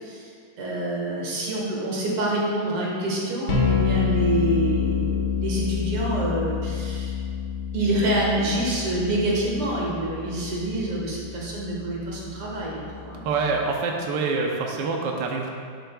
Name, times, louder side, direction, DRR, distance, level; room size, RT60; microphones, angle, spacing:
voice 1, 0.6-7.1 7.7-13.2, right 1 dB, 85° right, -4 dB, 2.5 m, -27 dB
sound 1, 3.5-13.5, left 6 dB, 50° left, 1.4 m, -28 dB
voice 2, 13.2-15.5, right 4 dB, 65° right, 0 dB, 1.3 m, -26 dB
11.5 x 6.8 x 2.3 m, 2.2 s
omnidirectional pair, 2.3 m